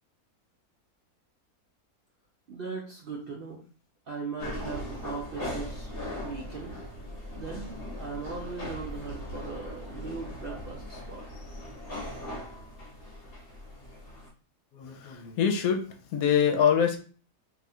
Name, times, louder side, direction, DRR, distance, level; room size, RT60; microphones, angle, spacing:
voice 1, 2.5-3.6 4.1-6.7 7.3-7.7 8.0-11.2, right 4 dB, 55° right, -1 dB, 0.6 m, -39 dB
sound 1, 4.4-14.3, left 1 dB, 45° left, 1.0 m, -39 dB
voice 2, 14.7-15.8 16.1-17.0, left 8 dB, 75° left, 5 dB, 1.0 m, -24 dB
2.7 x 2.4 x 4.1 m, 0.38 s
omnidirectional pair, 1.6 m